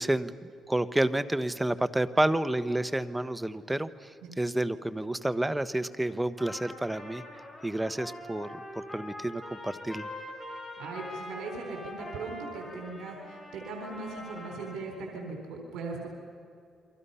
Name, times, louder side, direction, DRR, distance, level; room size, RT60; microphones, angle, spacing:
voice 1, 0.0-7.2 7.6-10.1, right 1 dB, 10° right, 13 dB, 1.0 m, -30 dB
Trumpet, 6.4-14.9, left 1 dB, 20° left, 7.9 m, -43 dB
voice 2, 10.8-16.1, right 3 dB, 85° right, 1 dB, 4.0 m, -39 dB
29.0 x 23.5 x 5.7 m, 2.4 s
cardioid pair, 90°, 0 cm